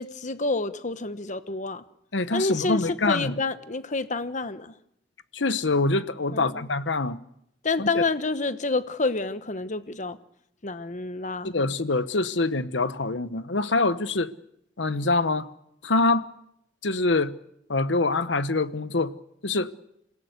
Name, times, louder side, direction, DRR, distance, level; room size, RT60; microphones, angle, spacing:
voice 1, 0.0-1.8 2.3-4.7 6.3-6.7 7.6-10.2 10.6-11.5, left 3 dB, 45° left, 1.1 m, -28 dB
voice 2, 2.1-3.4 5.3-7.2 7.8-8.0 11.4-14.3 14.8-15.5 15.8-16.3 16.8-17.3 17.7-19.1 19.4-19.7, left 3 dB, 75° left, 1.1 m, -25 dB
27.0 x 17.0 x 8.1 m
head